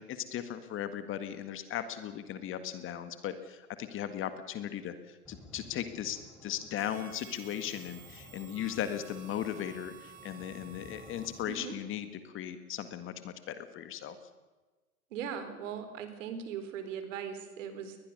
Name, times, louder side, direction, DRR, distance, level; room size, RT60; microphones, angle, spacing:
voice 1, 0.0-14.2, left 10 dB, 30° left, 10 dB, 1.8 m, -37 dB
sound 1, 5.2-11.6, left 1 dB, 5° left, 3.9 m, -55 dB
Harmonica, 6.7-11.8, right 8 dB, 75° right, 3.6 m, -53 dB
voice 2, 15.1-18.0, right 7 dB, 60° right, 9 dB, 4.1 m, -39 dB
22.0 x 20.5 x 6.8 m, 1.2 s
hypercardioid pair, 110°, 44 cm